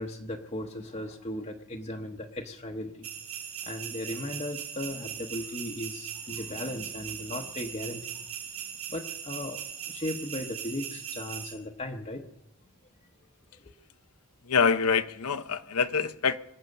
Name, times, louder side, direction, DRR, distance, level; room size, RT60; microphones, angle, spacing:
voice 1, 0.0-3.1 3.6-8.2 8.9-12.2 13.6-13.7, left 1 dB, 30° left, 1.0 m, -37 dB
sound 1, 3.0-11.5, right 9 dB, 70° right, 3.2 m, -39 dB
voice 2, 14.4-16.4, left 5 dB, 80° left, 0.8 m, -25 dB
24.5 x 8.6 x 6.6 m
head